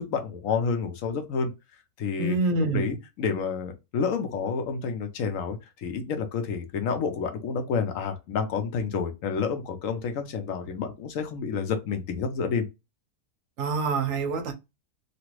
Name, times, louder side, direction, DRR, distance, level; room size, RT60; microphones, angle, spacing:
voice 1, 0.0-1.5 2.0-2.4 2.7-12.7, left 5 dB, 65° left, 1.0 m, -29 dB
voice 2, 2.2-2.8 13.6-14.5, right 3 dB, 65° right, 0.9 m, -26 dB
2.9 x 2.5 x 3.0 m
omnidirectional pair, 1.6 m